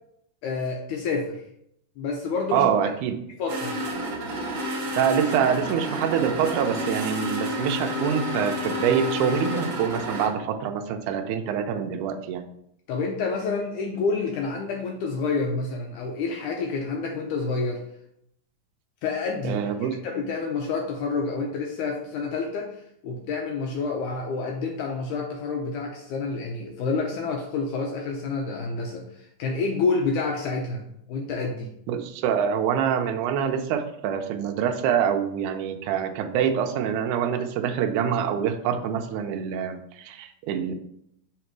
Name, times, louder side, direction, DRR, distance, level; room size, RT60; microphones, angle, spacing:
voice 1, 0.4-1.4 2.0-2.9 3.4-3.8 12.9-17.8 19.0-19.8 20.0-22.7 23.0-31.7, left 4 dB, 75° left, 1 dB, 1.9 m, -28 dB
voice 2, 2.5-3.3 5.0-12.5 19.4-20.0 31.9-40.7, right 8 dB, 80° right, 5 dB, 1.9 m, -25 dB
sound 1, 3.5-10.3, equal, 65° right, 1.2 m, -30 dB
6.6 x 4.0 x 4.6 m, 0.74 s
omnidirectional pair, 4.1 m